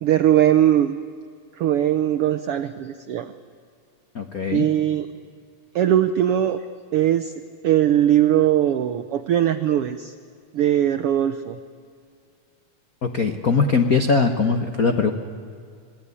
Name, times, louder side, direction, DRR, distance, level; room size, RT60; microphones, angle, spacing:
voice 1, 0.0-0.9 1.6-3.3 4.5-5.1 5.7-6.6 6.9-7.3 7.6-10.1 10.5-11.6, right 11 dB, 80° right, 10 dB, 1.3 m, -20 dB
voice 2, 4.1-4.7 13.0-15.1, left 4 dB, 70° left, 6 dB, 0.8 m, -21 dB
27.5 x 20.5 x 9.9 m, 2.2 s
omnidirectional pair, 3.6 m